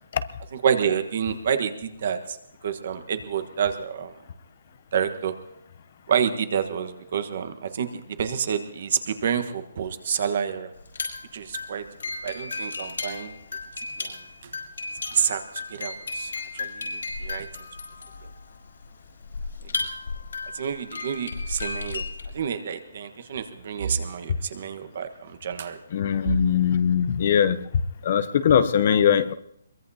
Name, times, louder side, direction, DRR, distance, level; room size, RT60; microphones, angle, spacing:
voice 1, 0.5-2.4 2.6-4.1 4.9-5.3 6.1-10.7 11.3-11.9 12.2-13.4 14.0-14.2 14.4-14.5 15.1-17.5 20.5-22.0 22.3-25.8 26.3-26.4, right 7 dB, 45° right, 9 dB, 1.3 m, -28 dB
sound 1, 10.8-22.3, left 3 dB, 85° left, 6.5 m, -34 dB
voice 2, 25.9-27.6 28.0-29.3, left 8 dB, 40° left, 12 dB, 0.7 m, -21 dB
23.0 x 21.5 x 2.8 m, 0.72 s
hypercardioid pair, 170°, 0 cm